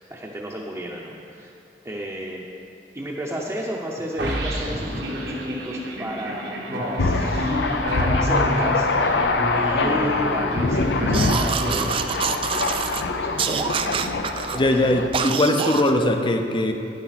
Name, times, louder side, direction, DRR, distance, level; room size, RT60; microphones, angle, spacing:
voice 1, 0.0-1.5 1.8-2.5 2.9-7.6 8.0-8.9 9.5-13.8 14.5-14.7, right 1 dB, 15° right, -4 dB, 0.7 m, -33 dB
sound 1, 4.2-12.5, equal, 85° right, 1.4 m, -28 dB
Thunder, 7.0-15.1, left 3 dB, 70° left, 0.6 m, -24 dB
sound 2, 11.1-13.0 13.4-14.6 15.1-15.9, right 6 dB, 30° right, 0.3 m, -26 dB
voice 2, 14.5-16.7, left 1 dB, 30° left, 5 dB, 0.7 m, -20 dB
10.0 x 10.0 x 4.1 m, 2.8 s
head